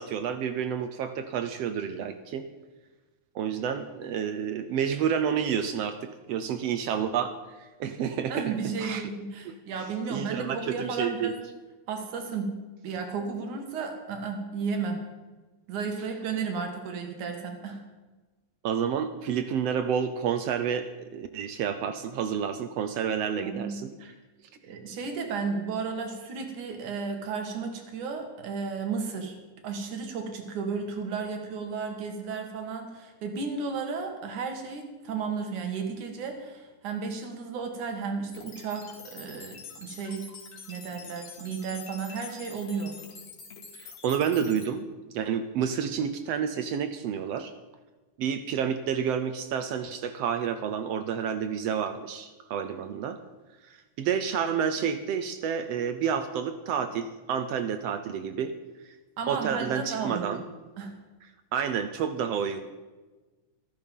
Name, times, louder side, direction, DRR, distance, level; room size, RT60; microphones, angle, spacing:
voice 1, 0.0-2.5 3.3-6.0 6.3-8.5 8.8-9.1 9.4-9.5 10.1-11.4 18.6-23.9 43.7-44.9 45.1-47.5 48.2-53.2 53.6-58.5 58.8-58.9 59.3-60.4 61.5-62.6, right 7 dB, 70° right, 9 dB, 1.6 m, -29 dB
voice 2, 8.3-11.4 11.9-15.0 15.7-17.8 23.4-24.2 24.6-29.4 29.6-40.3 40.7-43.0 59.2-60.4 60.8-61.0, right 5 dB, 90° right, 5 dB, 3.3 m, -33 dB
sound 1, 38.3-44.7, left 5 dB, 65° left, 3.4 m, -46 dB
14.0 x 13.5 x 5.4 m, 1.2 s
omnidirectional pair, 3.4 m